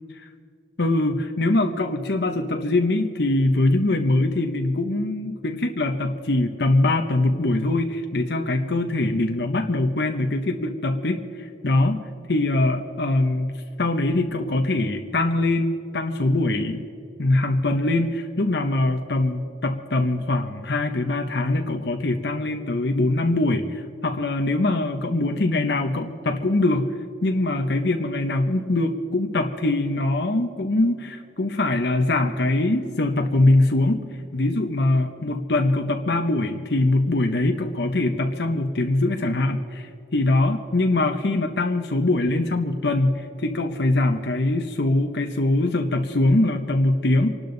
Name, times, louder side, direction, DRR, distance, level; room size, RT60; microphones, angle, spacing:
voice 1, 0.8-13.5 13.8-16.8 17.2-26.9 27.2-47.4, left 2 dB, 65° left, 5 dB, 1.0 m, -22 dB
28.0 x 12.0 x 4.0 m, 2.4 s
head